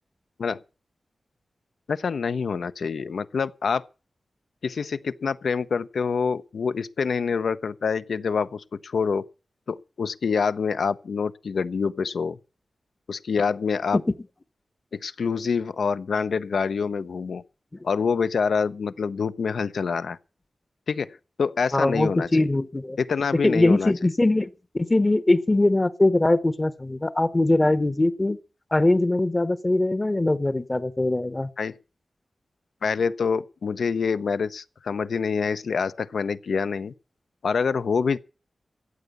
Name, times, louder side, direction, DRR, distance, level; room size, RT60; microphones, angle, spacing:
voice 1, 1.9-3.8 4.6-9.2 9.7-12.4 13.1-14.0 14.9-17.4 17.8-20.2 20.9-22.3 23.0-23.9 31.6-31.7 32.8-36.9 37.4-38.2, left 5 dB, 85° left, 0.7 m, -26 dB
voice 2, 21.7-23.0 23.4-28.4 28.7-31.5, left 2 dB, 20° left, 0.8 m, -22 dB
14.5 x 8.2 x 8.1 m
wide cardioid pair, 145°, 0 cm